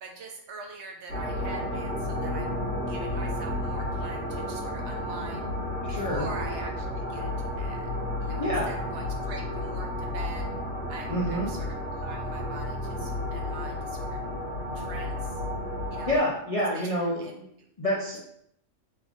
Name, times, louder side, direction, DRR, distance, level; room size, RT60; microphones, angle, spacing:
voice 1, 0.0-2.5 2.8-5.5 5.9-7.9 8.2-10.5 10.9-14.2 14.7-15.4 15.9-16.2 16.7-17.7, right 3 dB, 70° right, 2 dB, 0.9 m, -44 dB
sound 1, 1.1-16.2, left 1 dB, 55° right, 1.2 m, -32 dB
voice 2, 5.9-6.3 8.4-8.7 11.1-11.5 16.1-17.4 17.8-18.2, equal, 50° left, -5 dB, 0.4 m, -27 dB
3.1 x 2.4 x 3.6 m, 0.74 s
omnidirectional pair, 1.3 m